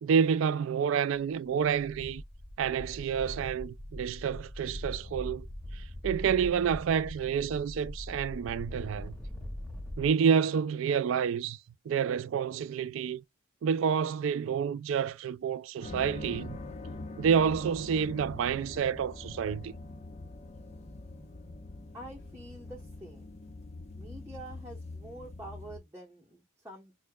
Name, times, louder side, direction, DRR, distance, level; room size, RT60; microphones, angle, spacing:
voice 1, 0.0-2.2 2.6-5.5 5.7-9.1 10.0-11.6 11.9-13.2 13.6-16.6 17.2-19.7, right 7 dB, 75° right, 0.3 m, -29 dB
sound 1, 1.3-1.4 1.6-10.1, left 1 dB, 5° left, 1.7 m, -42 dB
sound 2, 15.8-25.8, left 2 dB, 35° left, 0.8 m, -44 dB
voice 2, 21.9-23.4 24.0-26.9, right 1 dB, 10° right, 0.9 m, -47 dB
6.3 x 2.1 x 2.2 m
head